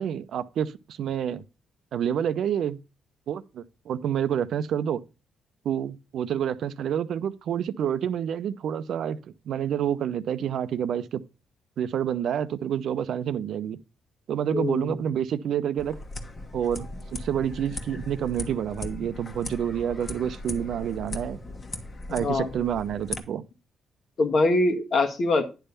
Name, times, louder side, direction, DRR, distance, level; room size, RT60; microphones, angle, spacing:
voice 1, 0.0-1.4 1.9-2.8 3.3-5.0 5.6-9.2 9.5-11.2 11.8-13.8 14.3-15.9 16.5-21.4 22.1-23.4, right 9 dB, 70° right, 0.5 m, -28 dB
voice 2, 14.5-15.0 22.2-22.5 24.2-25.5, left 2 dB, 60° left, 1.5 m, -23 dB
sound 1, 15.8-23.2, left 2 dB, 45° left, 1.4 m, -38 dB
10.0 x 3.5 x 6.8 m
hypercardioid pair, 50°, 0 cm